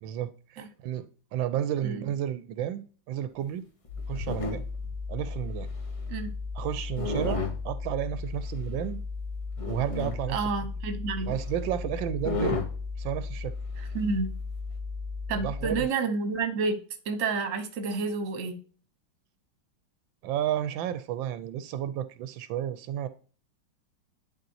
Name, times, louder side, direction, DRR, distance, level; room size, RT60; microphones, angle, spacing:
voice 1, 0.0-3.6 4.1-4.6 5.1-5.7 6.5-9.0 9.6-10.4 11.3-12.6 13.0-13.5 15.3-15.9 20.2-23.1, right 11 dB, 85° right, 1.3 m, -32 dB
sound 1, 3.8-4.9 5.5-6.3 7.0-7.6 8.5-8.6 9.6-10.2 11.3-11.4 11.7-11.8 12.2-12.7 14.0-14.1, left 3 dB, 45° left, 0.4 m, -32 dB
sound 2, 3.9-15.8, left 4 dB, 80° left, 2.0 m, -36 dB
voice 2, 10.3-11.3 13.9-14.3 15.3-16.8 17.0-18.6, right 4 dB, 50° right, 1.3 m, -29 dB
10.5 x 4.2 x 2.7 m
omnidirectional pair, 2.1 m